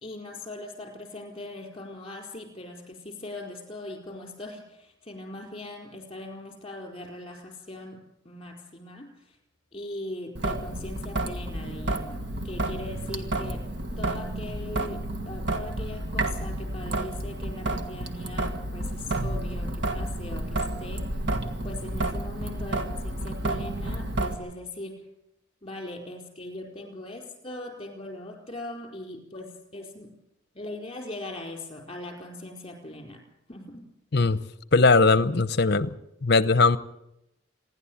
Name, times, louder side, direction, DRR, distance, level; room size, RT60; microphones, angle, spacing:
voice 1, 0.0-9.4 9.7-13.7 14.0-21.1 21.6-25.0 25.6-30.2 30.5-33.2 33.5-33.9, left 1 dB, 25° left, 4.4 m, -40 dB
Traffic noise roadway noise / Drip / Trickle dribble, 10.4-24.4, right 1 dB, 55° right, 1.6 m, -31 dB
voice 2, 34.7-35.9 36.2-36.8, left 3 dB, 50° left, 0.8 m, -19 dB
27.0 x 11.0 x 8.7 m
head